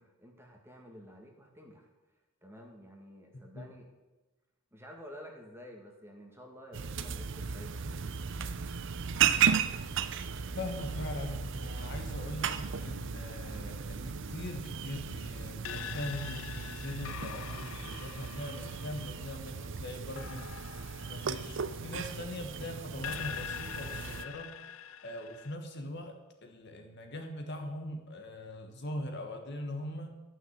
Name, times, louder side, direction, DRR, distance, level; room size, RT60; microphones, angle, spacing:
voice 1, 0.0-1.9 2.4-3.9 4.7-8.3, equal, 10° right, 1 dB, 1.7 m, -51 dB
sound 1, 6.7-24.2, right 7 dB, 60° right, 0.6 m, -35 dB
voice 2, 10.6-20.5 21.1-24.5 25.0-26.2 26.4-30.1, left 1 dB, 55° left, 4 dB, 1.4 m, -41 dB
sound 2, 15.6-22.5 23.0-25.6, left 9 dB, 75° left, 0.5 m, -44 dB
12.5 x 6.2 x 8.0 m, 1.1 s
head